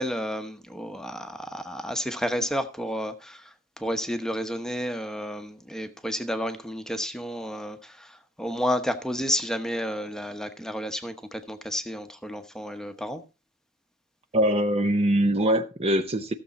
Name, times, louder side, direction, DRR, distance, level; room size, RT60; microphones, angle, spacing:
voice 1, 0.0-13.2, equal, 5° left, 0.9 m, -31 dB
voice 2, 14.3-16.3, right 1 dB, 30° right, 0.6 m, -23 dB
14.5 x 6.9 x 4.1 m
head